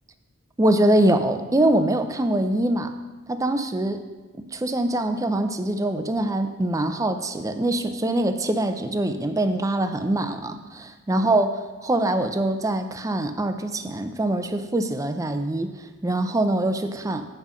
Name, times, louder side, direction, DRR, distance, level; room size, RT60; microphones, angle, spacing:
voice 1, 0.6-3.0 3.3-4.0 4.5-17.3, right 1 dB, 15° right, 8 dB, 0.4 m, -23 dB
9.0 x 5.5 x 6.0 m, 1.3 s
head